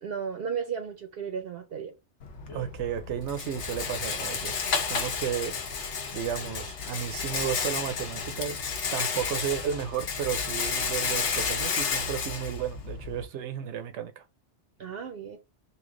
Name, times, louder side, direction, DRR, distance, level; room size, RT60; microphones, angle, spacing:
voice 1, 0.0-1.9 14.8-15.4, right 7 dB, 60° right, 0.8 m, -34 dB
Rattle, 2.2-13.2, left 5 dB, 85° left, 1.1 m, -32 dB
voice 2, 2.5-4.5 4.9-5.5 6.1-8.6 8.9-14.2, right 9 dB, 85° right, 1.0 m, -33 dB
3.2 x 2.8 x 3.7 m
omnidirectional pair, 1.2 m